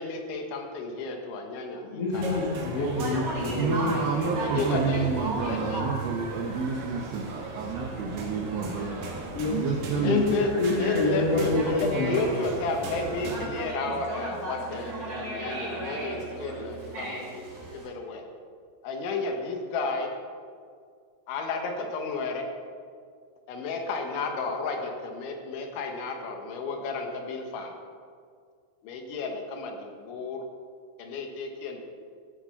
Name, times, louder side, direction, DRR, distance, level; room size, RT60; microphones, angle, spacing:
voice 1, 0.0-2.4 2.8-2.9 4.4-5.8 10.0-10.5 10.8-17.5 17.7-18.2 18.8-20.1 21.3-22.5 23.5-27.8 28.8-30.5 31.0-31.8, left 3 dB, 90° left, 3 dB, 3.7 m, -32 dB
voice 2, 1.8-4.0 9.3-12.4, left 2 dB, 70° left, -5 dB, 1.4 m, -28 dB
sound 1, 2.1-13.5, right 3 dB, 60° right, 2.4 m, -38 dB
Conversation, 2.8-17.9, right 2 dB, 40° right, 4.1 m, -37 dB
voice 3, 3.6-9.1 9.5-10.2, right 4 dB, 80° right, 0 dB, 2.1 m, -29 dB
14.5 x 7.4 x 5.8 m, 2.1 s
omnidirectional pair, 5.2 m